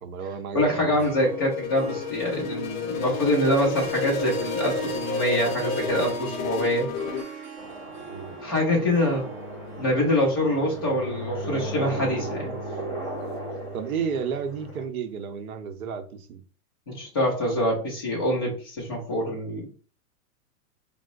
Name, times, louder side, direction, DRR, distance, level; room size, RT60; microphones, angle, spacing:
voice 1, 0.0-1.0 8.1-8.4 13.7-16.4, right 6 dB, 70° right, 0.7 m, -32 dB
voice 2, 0.5-7.4 8.4-9.2 9.8-12.5 16.9-19.7, left 1 dB, 20° left, 0.4 m, -25 dB
Harp, 1.0-12.4, right 6 dB, 35° right, 0.9 m, -42 dB
sound 1, 1.2-7.2, left 5 dB, 65° left, 0.7 m, -31 dB
sound 2, 7.6-14.8, right 1 dB, 15° right, 1.1 m, -36 dB
4.5 x 2.0 x 2.4 m
hypercardioid pair, 165°, 44 cm